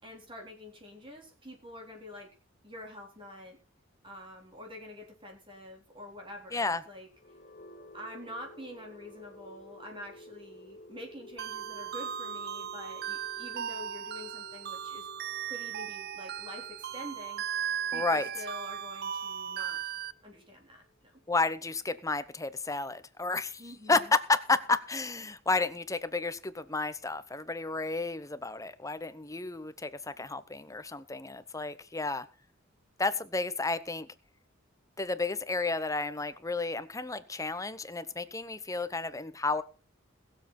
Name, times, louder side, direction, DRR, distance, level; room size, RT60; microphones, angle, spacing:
voice 1, 0.0-2.3 2.6-3.6 4.0-7.1 7.9-15.1 15.5-17.4 17.9-19.8 20.2-21.2 23.6-24.0, left 1 dB, 25° right, 1 dB, 3.9 m, -46 dB
voice 2, 6.5-6.8 17.9-18.3 21.3-23.6 23.9-32.3 33.0-34.1 35.0-39.6, left 3 dB, 15° left, 13 dB, 0.9 m, -31 dB
sound 1, 7.1-21.0, left 2 dB, 40° left, 1.2 m, -53 dB
sound 2, 11.4-20.1, right 9 dB, 50° right, 0.5 m, -37 dB
22.0 x 7.5 x 4.3 m, 0.33 s
head